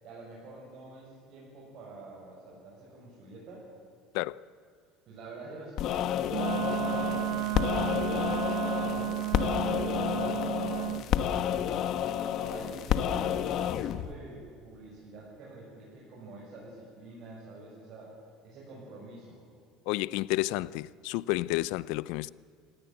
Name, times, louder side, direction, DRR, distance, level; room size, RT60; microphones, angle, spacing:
voice 1, 0.0-3.7 5.1-11.7 12.4-18.1 18.4-19.4, right 2 dB, 45° right, 6.9 m, -47 dB
sound 1, 5.8-14.1, left 10 dB, 50° left, 1.1 m, -30 dB
Wind instrument woodwind instrument, 6.3-11.1, right 20 dB, 90° right, 1.1 m, -32 dB
voice 2, 19.9-22.3, left 19 dB, 75° left, 0.5 m, -30 dB
26.0 x 17.0 x 9.4 m
cardioid pair, 150°, 0 cm